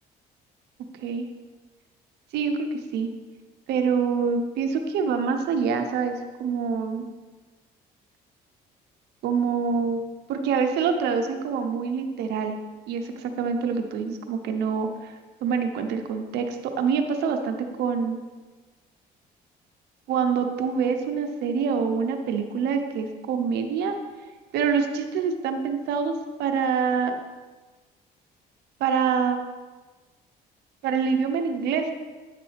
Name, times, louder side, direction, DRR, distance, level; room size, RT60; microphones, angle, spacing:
voice 1, 2.3-2.7 2.9-3.1 3.7-6.1 6.4-7.1 9.2-10.0 10.3-12.6 12.9-18.2 20.1-24.0 24.5-26.1 26.4-27.1 28.8-29.4 30.8-31.9, right 6 dB, 80° right, 6 dB, 1.0 m, -25 dB
9.7 x 6.7 x 3.4 m, 1.3 s
cardioid pair, 110°, 17 cm